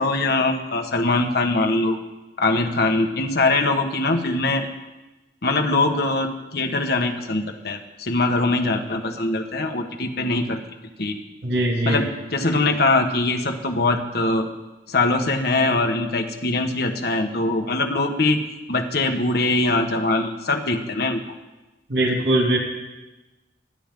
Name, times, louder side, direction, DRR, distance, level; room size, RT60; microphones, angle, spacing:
voice 1, 0.0-2.0 2.4-4.7 5.4-10.6 11.0-11.2 11.8-14.5 14.9-18.4 18.7-21.2, left 2 dB, 60° left, 3 dB, 1.6 m, -22 dB
voice 2, 11.4-12.0 21.9-22.6, right 1 dB, 85° right, -1 dB, 3.0 m, -21 dB
24.0 x 10.5 x 3.9 m, 1.1 s
head